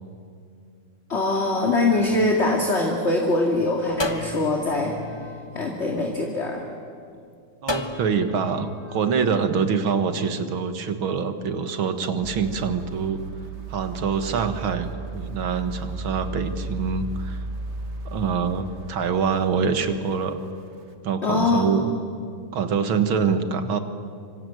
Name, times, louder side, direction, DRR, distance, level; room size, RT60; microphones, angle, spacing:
voice 1, 1.1-5.0 5.5-6.6 21.2-21.9, left 2 dB, 35° left, 0 dB, 2.6 m, -23 dB
sound 1, 1.9-3.3 4.0-6.5 7.7-9.1, left 1 dB, 15° left, 1.2 m, -34 dB
voice 2, 7.6-13.2 13.7-17.4 18.1-20.4 21.0-21.9 22.5-23.8, right 6 dB, 80° right, 9 dB, 2.4 m, -25 dB
sound 2, 12.2-20.5 20.9-21.0, right 3 dB, 35° right, 1.6 m, -35 dB
25.5 x 25.0 x 9.3 m, 2.3 s
omnidirectional pair, 2.2 m